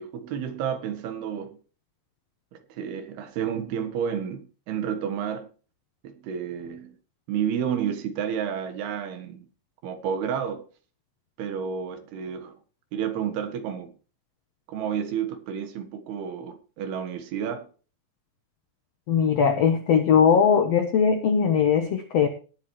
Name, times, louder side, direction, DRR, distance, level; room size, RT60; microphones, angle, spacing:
voice 1, 0.0-1.6 2.5-5.5 6.0-7.0 7.3-9.5 9.8-10.6 11.4-12.6 12.9-13.9 14.7-17.7, right 8 dB, 75° right, 3.3 m, -31 dB
voice 2, 19.1-22.3, left 7 dB, 75° left, 1.5 m, -20 dB
19.0 x 7.7 x 3.1 m
omnidirectional pair, 4.6 m